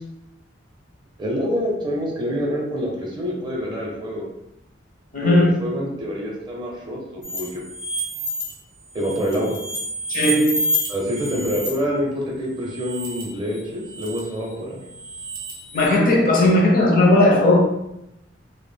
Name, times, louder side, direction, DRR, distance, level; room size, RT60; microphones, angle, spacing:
voice 1, 1.2-4.3 5.2-7.5 8.9-9.6 10.9-14.8, equal, 25° right, 0.5 m, -26 dB
voice 2, 5.1-5.6 10.1-10.7 15.7-17.6, left 1 dB, 45° left, 0.5 m, -16 dB
sound 1, 7.2-8.5 8.9-11.7 12.6-13.2 13.5-14.2 14.8-15.9, equal, 85° left, 0.9 m, -29 dB
2.1 x 2.0 x 3.2 m
head